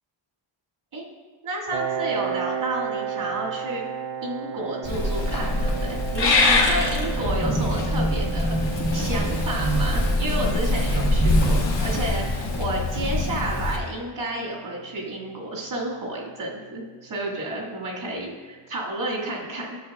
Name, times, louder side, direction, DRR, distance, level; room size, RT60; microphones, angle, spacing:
voice 1, 1.4-3.8 4.2-19.8, right 1 dB, 80° right, -4 dB, 2.1 m, -31 dB
Piano, 1.7-17.1, right 9 dB, 60° right, 0.6 m, -35 dB
Purr / Meow, 4.8-13.8, left 2 dB, 60° left, 1.2 m, -24 dB
sound 1, 7.1-12.2, right 1 dB, 10° right, 0.8 m, -28 dB
11.0 x 7.6 x 2.4 m, 1.4 s
wide cardioid pair, 170°, 47 cm